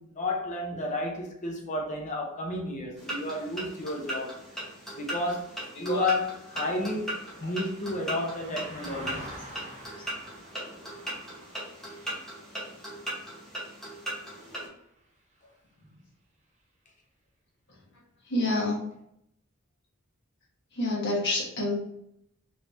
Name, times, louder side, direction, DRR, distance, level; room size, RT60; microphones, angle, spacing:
voice 1, 0.0-4.4 4.9-9.3, left 2 dB, 35° left, 0.6 m, -32 dB
sound 1, 3.0-14.7, right 1 dB, ahead, 1.0 m, -38 dB
Car passing by, 5.4-15.0 15.4-15.6, right 1 dB, 30° right, 0.6 m, -48 dB
voice 2, 5.7-6.1 6.7-6.8 10.0-10.1 18.3-18.8 20.7-21.7, left 2 dB, 55° left, 1.2 m, -28 dB
3.2 x 3.1 x 2.6 m
head